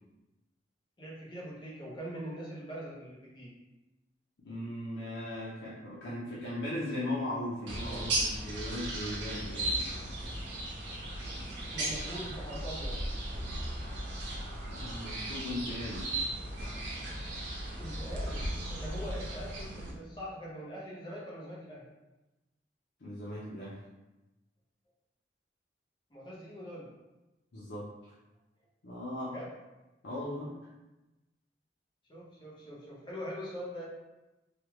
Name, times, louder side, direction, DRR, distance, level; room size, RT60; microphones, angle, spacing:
voice 1, 1.0-3.5 11.5-13.0 17.7-21.8 26.1-26.9 29.3-29.5 32.1-33.8, equal, 25° left, -6 dB, 0.9 m, -42 dB
voice 2, 4.4-9.9 14.7-16.1 23.0-23.8 27.5-28.1 28.8-29.4 30.0-30.5, left 1 dB, 80° left, -8 dB, 0.7 m, -38 dB
sound 1, 7.7-19.9, right 1 dB, 80° right, 0.7 m, -36 dB
3.3 x 2.3 x 3.0 m, 1.0 s
head